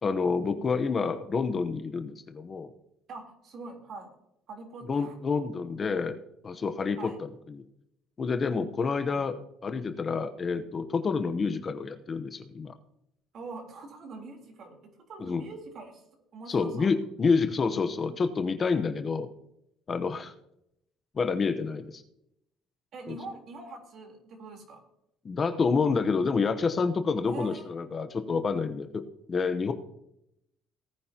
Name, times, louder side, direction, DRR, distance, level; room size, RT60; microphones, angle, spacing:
voice 1, 0.0-2.7 4.9-6.2 6.4-7.1 7.5-7.6 8.2-12.7 15.2-15.4 16.5-19.3 19.9-20.3 21.1-22.0 23.1-23.2 25.2-29.0 29.3-29.7, left 4 dB, 30° left, 8 dB, 0.9 m, -28 dB
voice 2, 3.1-4.1 4.5-5.2 7.0-7.2 9.1-9.2 13.3-16.0 16.3-16.9 22.9-24.8 27.3-27.7, right 3 dB, 50° right, 2 dB, 3.7 m, -43 dB
18.5 x 9.6 x 2.9 m, 0.78 s
cardioid pair, 125°, 0 cm